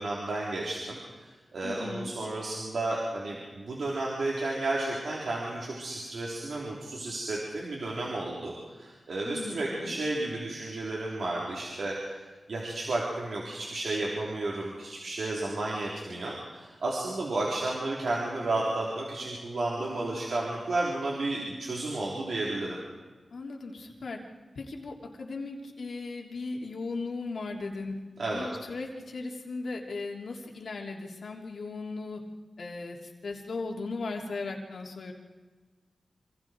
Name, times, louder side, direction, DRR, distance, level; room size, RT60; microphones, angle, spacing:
voice 1, 0.0-12.2 12.5-22.8 28.2-28.5, right 2 dB, 75° right, -4 dB, 4.2 m, -32 dB
voice 2, 1.6-2.1 9.2-10.0 23.3-24.2 24.5-27.9 28.3-32.2 32.6-35.1, left 3 dB, 80° left, 0 dB, 3.3 m, -37 dB
27.5 x 26.5 x 4.8 m, 1.3 s
wide cardioid pair, 105°, 0 cm